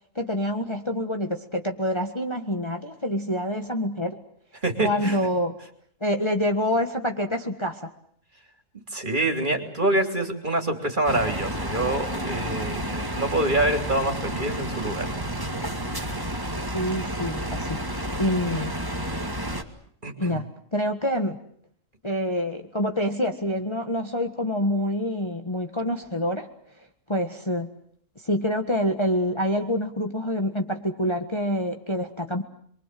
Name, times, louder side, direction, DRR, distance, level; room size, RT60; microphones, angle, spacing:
voice 1, 0.1-4.2 4.8-5.5 6.0-7.9 16.7-17.8 18.2-18.7 20.2-20.4 20.7-21.4 22.0-26.5 27.1-27.7 28.2-32.4, left 1 dB, 20° left, 4 dB, 1.7 m, -26 dB
voice 2, 4.6-5.2 8.9-15.1 20.0-20.4, right 1 dB, 35° right, 4 dB, 3.6 m, -26 dB
sound 1, 11.0-19.6, right 1 dB, 15° right, 2.2 m, -30 dB
28.0 x 23.5 x 7.8 m, 0.63 s
omnidirectional pair, 1.4 m